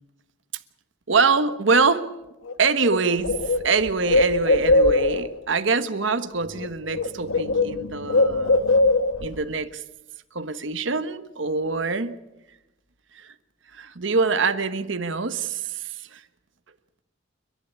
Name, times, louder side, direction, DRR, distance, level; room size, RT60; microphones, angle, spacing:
voice 1, 1.1-2.1 2.6-8.6 9.2-9.8 10.3-12.1 13.1-13.3 13.7-16.2, right 4 dB, 70° right, 10 dB, 1.3 m, -24 dB
Bird, 2.5-2.6 2.8-5.4 6.4-6.7 6.9-9.4, left 2 dB, 90° left, 1.4 m, -21 dB
30.0 x 11.5 x 9.9 m, 0.95 s
head